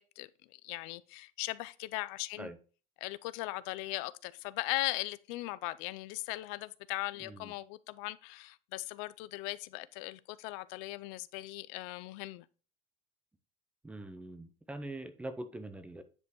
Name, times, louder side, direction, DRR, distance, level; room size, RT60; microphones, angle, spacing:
voice 1, 0.2-2.5 3.0-12.5, left 19 dB, 70° left, 0.4 m, -39 dB
voice 2, 7.2-7.5 13.8-16.0, right 1 dB, 5° right, 0.6 m, -43 dB
9.6 x 5.4 x 3.0 m
cardioid pair, 150°, 18 cm